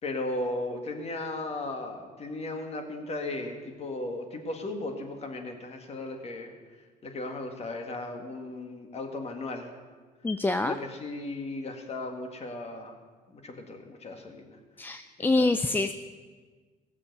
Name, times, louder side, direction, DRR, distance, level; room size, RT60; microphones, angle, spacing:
voice 1, 0.0-6.5 7.0-9.7 10.6-13.0 13.3-14.6 15.2-15.5, left 2 dB, 40° left, 4 dB, 1.9 m, -36 dB
voice 2, 10.2-10.8 14.8-15.9, left 2 dB, 10° left, 10 dB, 0.4 m, -26 dB
17.0 x 7.1 x 6.8 m, 1.5 s
cardioid pair, 110°, 17 cm